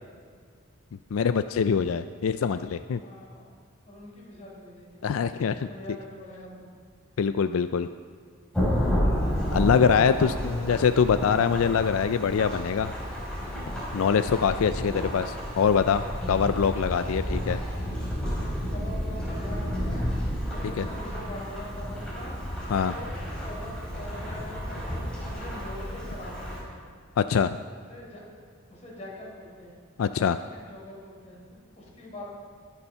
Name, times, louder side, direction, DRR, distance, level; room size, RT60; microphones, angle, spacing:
voice 1, 1.1-3.0 5.0-5.7 7.2-7.9 9.5-10.3 10.7-12.9 13.9-17.6 20.8-20.9 22.7-22.9 27.2-27.6 30.0-30.4, left 6 dB, 90° left, 11 dB, 0.4 m, -24 dB
voice 2, 3.0-3.5 3.8-6.7 10.0-10.7 17.2-17.9 18.7-20.1 20.5-22.3 22.8-23.2 23.4-26.8 27.9-28.2 28.7-29.7 30.5-32.2, left 1 dB, 35° left, -4 dB, 4.4 m, -43 dB
Thunderstorm / Rain, 8.5-26.6, equal, 5° left, 4.3 m, -31 dB
20.5 x 7.0 x 5.6 m, 2.1 s
head